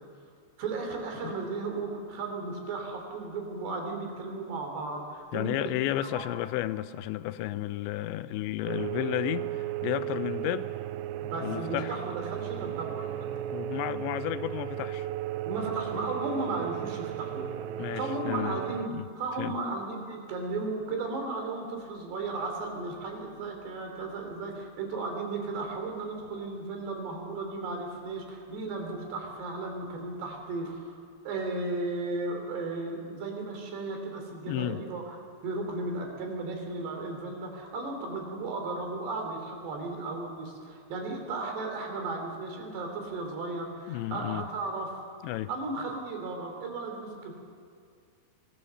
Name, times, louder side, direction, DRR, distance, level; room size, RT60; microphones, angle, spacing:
voice 1, 0.6-5.7 6.0-6.3 8.1-8.2 11.2-13.3 15.5-17.5 17.8-18.9 19.2-31.0 31.2-35.2 35.4-45.0 45.5-47.3, right 3 dB, 70° right, 2 dB, 5.0 m, -35 dB
voice 2, 5.3-10.7 11.4-11.9 13.5-15.1 17.8-18.6 18.9-19.1 19.4-19.6 34.5-34.8 43.9-44.5 45.2-45.5, left 14 dB, 90° left, 13 dB, 3.0 m, -32 dB
sound 1, 8.7-18.9, right 13 dB, 90° right, 2.9 m, -35 dB
24.0 x 17.0 x 6.8 m, 2.2 s
omnidirectional pair, 5.0 m